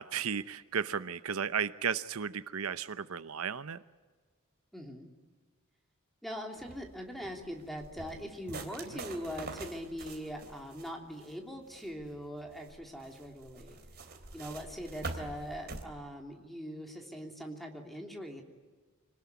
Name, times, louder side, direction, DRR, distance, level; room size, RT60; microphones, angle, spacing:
voice 1, 0.0-3.8, right 7 dB, 75° right, 14 dB, 0.8 m, -34 dB
voice 2, 4.7-5.1 6.2-13.8 14.3-18.4, equal, ahead, 2 dB, 3.1 m, -42 dB
sound 1, 6.6-15.8, right 3 dB, 45° right, 3.1 m, -46 dB
26.0 x 19.5 x 9.4 m, 1.4 s
head